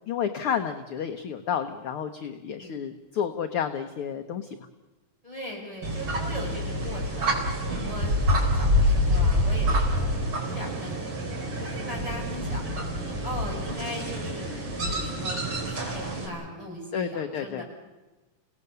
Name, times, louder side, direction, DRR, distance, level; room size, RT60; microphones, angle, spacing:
voice 1, 0.1-4.5 16.9-17.6, left 8 dB, 60° left, 7 dB, 1.5 m, -30 dB
voice 2, 5.2-7.4 7.8-10.1 10.4-12.6 13.0-14.5 14.8-17.6, equal, 10° right, -3 dB, 7.1 m, -39 dB
sound 1, 5.8-16.3, equal, 40° right, 4.6 m, -27 dB
30.0 x 18.0 x 6.8 m, 1.2 s
omnidirectional pair, 3.5 m